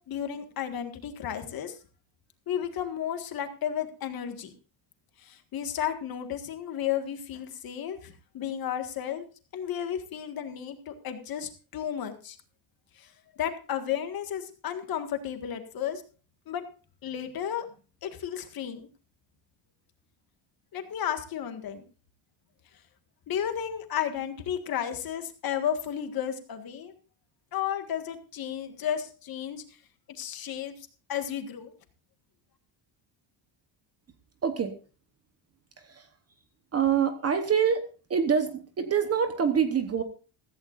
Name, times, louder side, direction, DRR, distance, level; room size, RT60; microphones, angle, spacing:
voice 1, 0.1-1.8 2.5-4.5 5.2-9.2 9.5-12.4 13.0-13.1 13.4-16.0 16.5-16.6 17.0-17.7 18.0-18.9 20.7-21.8 23.3-26.9 27.5-29.6 30.1-30.7 31.1-31.7, left 9 dB, 45° left, 7 dB, 1.8 m, -33 dB
voice 2, 34.4-34.7 35.8-36.1 36.7-37.8 38.1-40.0, right 7 dB, 30° right, 9 dB, 1.0 m, -25 dB
16.0 x 15.0 x 2.5 m, 0.36 s
cardioid pair, 170°, 49 cm